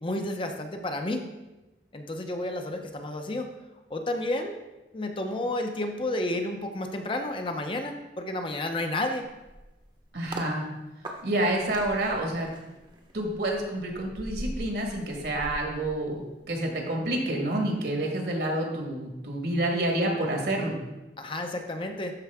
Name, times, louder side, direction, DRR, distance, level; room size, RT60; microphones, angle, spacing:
voice 1, 0.0-1.2 1.9-3.5 3.9-4.6 4.9-9.3 21.2-22.1, left 1 dB, 30° left, 5 dB, 0.7 m, -31 dB
sound 1, 9.2-10.5 11.0-16.6 16.9-17.2, right 1 dB, 25° right, 0.9 m, -42 dB
voice 2, 10.1-10.6 11.2-12.5 13.1-20.7, right 1 dB, 65° right, 1 dB, 1.7 m, -28 dB
12.5 x 4.6 x 3.5 m, 1.0 s
head